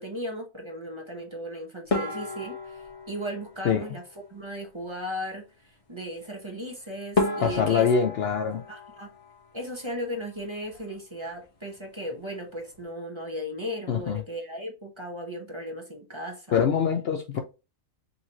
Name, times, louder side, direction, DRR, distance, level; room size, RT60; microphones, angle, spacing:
voice 1, 0.0-4.0 4.3-7.9 8.7-9.1 9.5-16.6, equal, 25° right, 0.9 m, -36 dB
sound 1, 1.9-4.4 6.6-6.7 7.1-9.9 10.2-11.0 11.3-11.5 11.8-11.9 12.5-12.8, left 2 dB, 30° left, 0.9 m, -33 dB
voice 2, 7.4-8.6 13.9-14.2 16.5-17.4, left 7 dB, 60° left, 0.7 m, -24 dB
5.4 x 2.9 x 2.9 m
omnidirectional pair, 1.4 m